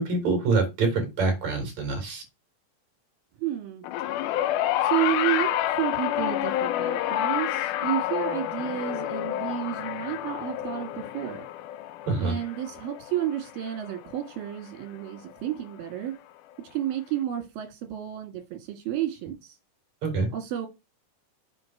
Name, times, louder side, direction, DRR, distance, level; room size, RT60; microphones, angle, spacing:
voice 1, 0.0-2.2 12.1-12.4 20.0-20.3, right 3 dB, 50° right, 4.1 m, -25 dB
voice 2, 3.4-3.9 4.8-11.5 12.2-16.1 16.7-19.6 20.3-20.7, right 11 dB, 75° right, 3.9 m, -31 dB
sound 1, 3.8-14.3 15.3-15.4, left 13 dB, 80° left, 1.8 m, -29 dB
7.7 x 4.0 x 5.9 m
omnidirectional pair, 4.2 m